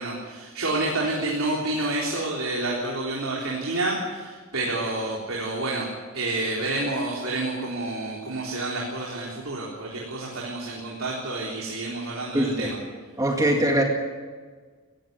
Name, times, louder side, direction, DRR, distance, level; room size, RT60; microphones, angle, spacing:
voice 1, 0.0-5.9 6.1-12.8, right 2 dB, 70° right, -3 dB, 3.8 m, -29 dB
voice 2, 12.3-12.7 13.2-13.8, right 1 dB, 15° right, 1 dB, 2.2 m, -22 dB
18.5 x 16.0 x 9.4 m, 1.5 s
head